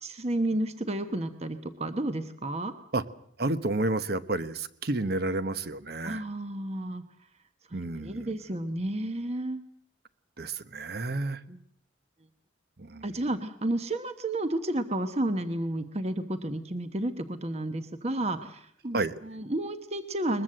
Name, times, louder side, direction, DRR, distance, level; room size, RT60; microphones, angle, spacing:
voice 1, 0.0-2.7 6.0-7.0 8.0-9.6 11.5-11.6 13.0-20.4, right 1 dB, 35° right, 9 dB, 1.1 m, -31 dB
voice 2, 3.4-6.2 7.7-8.3 10.4-11.4 12.8-13.1 18.9-19.1, right 2 dB, 55° right, 13 dB, 1.0 m, -30 dB
21.5 x 21.5 x 7.8 m, 0.67 s
head